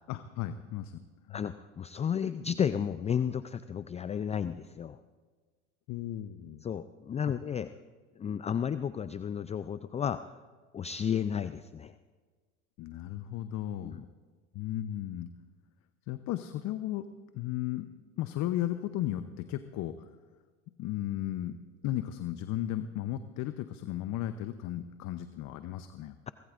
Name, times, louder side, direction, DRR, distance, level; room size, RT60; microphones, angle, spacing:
voice 1, 0.1-1.0 1.3-1.4 5.9-6.6 7.3-7.4 12.8-14.0 14.5-15.3 16.1-17.0 17.3-17.9 18.2-20.1 20.8-21.6 21.8-26.2, left 13 dB, 50° left, 10 dB, 0.9 m, -35 dB
voice 2, 1.3-5.0 6.6-7.7 8.2-10.4 10.7-11.9 13.8-14.0, left 8 dB, 20° left, 13 dB, 0.4 m, -32 dB
23.0 x 19.0 x 2.6 m, 1.4 s
hypercardioid pair, 85°, 36 cm